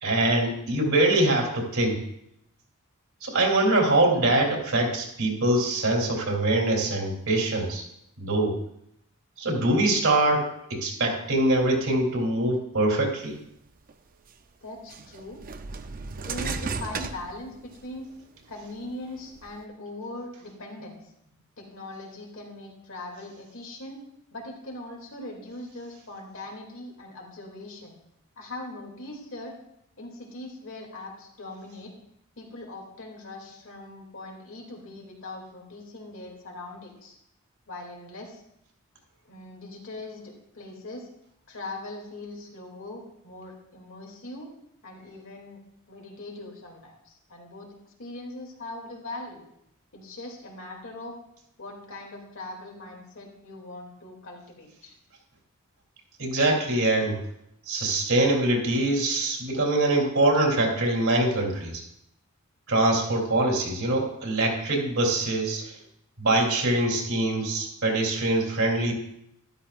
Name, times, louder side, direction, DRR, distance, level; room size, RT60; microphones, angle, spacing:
voice 1, 0.0-2.0 3.2-7.8 8.2-8.5 9.4-13.3 56.2-57.2 57.7-61.8 62.7-65.8 66.2-68.9, right 2 dB, 70° right, -1 dB, 3.2 m, -23 dB
sound 1, 13.9-14.0 14.9-18.0 18.5-19.5, right 4 dB, 40° right, 0.6 m, -35 dB
voice 2, 14.6-15.4 16.2-18.1 18.5-21.0 21.6-24.0 24.3-28.0 28.4-29.5 30.0-31.9 32.4-37.2 37.7-38.4 39.2-41.1 41.5-44.5 44.8-45.6 45.9-47.7 48.0-49.4 49.9-51.2 51.6-55.0, left 2 dB, 65° left, 0 dB, 2.6 m, -41 dB
13.0 x 12.5 x 2.5 m, 0.76 s
head